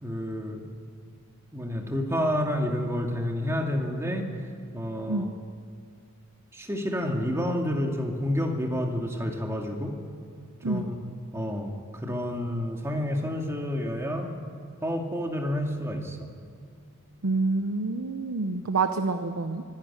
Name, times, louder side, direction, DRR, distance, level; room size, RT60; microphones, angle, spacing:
voice 1, 0.0-0.6 1.5-4.3 4.7-5.2 6.5-9.9 10.6-10.8 11.3-14.3 14.8-16.2, equal, 15° right, 1 dB, 2.2 m, -29 dB
voice 2, 17.2-19.6, right 3 dB, 80° right, 8 dB, 0.8 m, -27 dB
24.5 x 11.5 x 9.8 m, 2.3 s
head